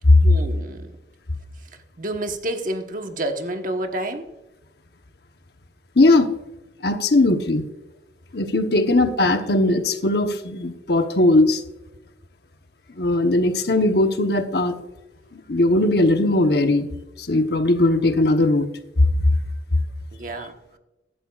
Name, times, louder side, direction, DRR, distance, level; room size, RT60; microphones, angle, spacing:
voice 1, 0.2-1.0 1.6-1.7 2.0-4.3 8.8-8.9 20.1-20.5, right 1 dB, 45° right, 5 dB, 1.2 m, -29 dB
voice 2, 6.0-6.3 6.8-7.6 8.3-11.6 13.0-14.8 15.3-16.9 17.2-18.7, left 2 dB, 60° left, 7 dB, 1.0 m, -18 dB
15.5 x 12.0 x 2.4 m, 1.0 s
head